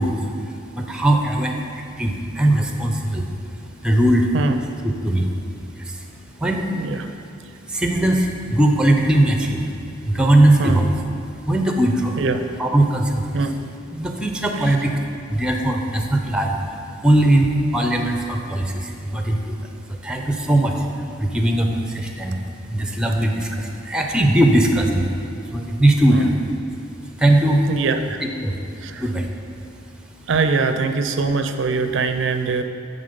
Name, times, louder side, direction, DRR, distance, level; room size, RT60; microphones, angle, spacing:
voice 1, 0.0-4.3 4.8-5.3 5.7-6.1 6.4-6.7 7.7-9.8 10.0-10.9 11.4-12.2 12.6-13.4 13.9-15.0 15.3-22.4 22.7-26.3 27.2-27.7 28.2-28.6 28.9-29.3, right 1 dB, 5° right, 3 dB, 0.5 m, -20 dB
voice 2, 6.7-7.1 10.6-10.8 12.2-12.4 13.3-13.5 14.5-14.8 26.1-26.3 27.7-28.2 28.8-29.1 30.3-32.6, right 4 dB, 65° right, 7 dB, 0.4 m, -22 dB
9.2 x 3.9 x 5.2 m, 2.5 s
head